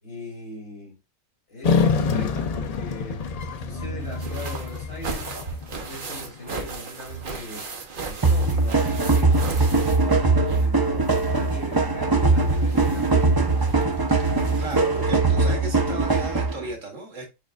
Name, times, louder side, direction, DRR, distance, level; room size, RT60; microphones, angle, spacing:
voice 1, 0.0-1.0 1.5-3.3 3.6-5.3 5.8-7.7 8.1-9.7 10.5-13.6, left 1 dB, 60° left, 3.3 m, -39 dB
sound 1, 1.6-6.2, left 5 dB, 80° left, 0.3 m, -26 dB
sound 2, 4.0-10.8 11.0-15.0 16.1-16.2 16.5-16.6, right 4 dB, 45° right, 1.0 m, -37 dB
sound 3, 8.2-16.7, right 3 dB, 25° right, 0.5 m, -21 dB
voice 2, 14.6-17.3, right 2 dB, 75° right, 2.0 m, -35 dB
6.5 x 3.2 x 2.4 m
omnidirectional pair, 1.3 m